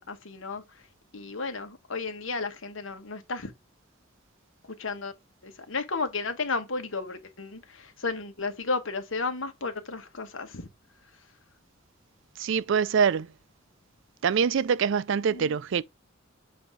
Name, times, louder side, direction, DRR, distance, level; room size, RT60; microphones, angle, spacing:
voice 1, 0.1-0.6 1.1-3.5 4.8-5.1 5.4-10.7 15.3-15.6, left 4 dB, 70° left, 1.3 m, -33 dB
voice 2, 12.4-13.3 14.2-15.8, right 6 dB, 65° right, 0.4 m, -24 dB
7.9 x 2.8 x 4.9 m
head